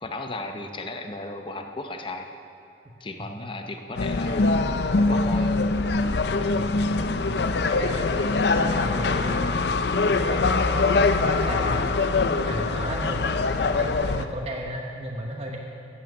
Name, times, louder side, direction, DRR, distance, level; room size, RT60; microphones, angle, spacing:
voice 1, 0.0-2.3 3.0-4.5 5.0-5.5, left 2 dB, 30° left, 5 dB, 0.7 m, -35 dB
sound 1, 4.0-14.3, left 3 dB, 65° left, 0.6 m, -23 dB
voice 2, 7.6-9.6 10.1-13.2 13.7-15.6, right 1 dB, 35° right, 0 dB, 1.1 m, -34 dB
16.0 x 8.8 x 6.4 m, 2.6 s
head